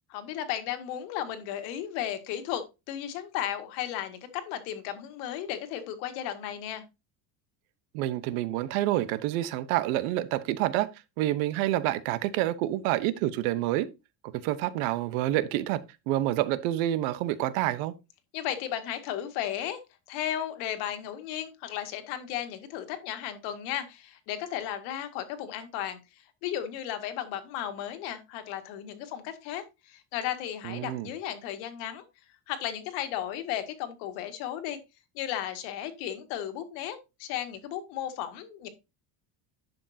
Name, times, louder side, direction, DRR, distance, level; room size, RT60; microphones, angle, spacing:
voice 1, 0.1-6.8 18.3-19.8 20.1-26.0 26.4-32.0 32.5-34.8 35.2-38.7, left 11 dB, 70° left, 2.0 m, -35 dB
voice 2, 7.9-10.9 11.2-13.9 14.2-17.9 30.6-31.1, right 14 dB, 85° right, 1.1 m, -28 dB
11.0 x 7.2 x 2.8 m
cardioid pair, 175°, 42 cm